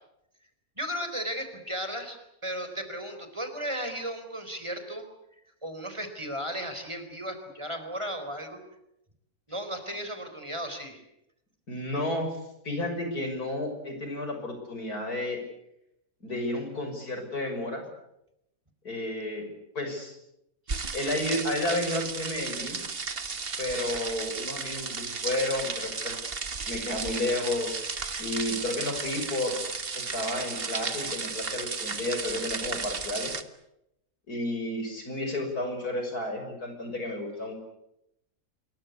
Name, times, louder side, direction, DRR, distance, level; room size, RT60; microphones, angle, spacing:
voice 1, 0.8-5.1 5.6-8.6 9.5-11.0, equal, 20° right, 7 dB, 4.4 m, -35 dB
voice 2, 11.7-12.4 12.6-15.4 16.2-17.8 18.8-19.5 19.7-20.2 20.9-22.8 23.6-26.2 26.7-27.8 28.2-29.6 29.9-33.3 34.3-37.5, left 1 dB, 90° left, 5 dB, 6.7 m, -31 dB
sound 1, 20.7-33.4, right 5 dB, 40° right, 1.6 m, -34 dB
26.5 x 23.0 x 8.3 m, 0.83 s
omnidirectional pair, 1.6 m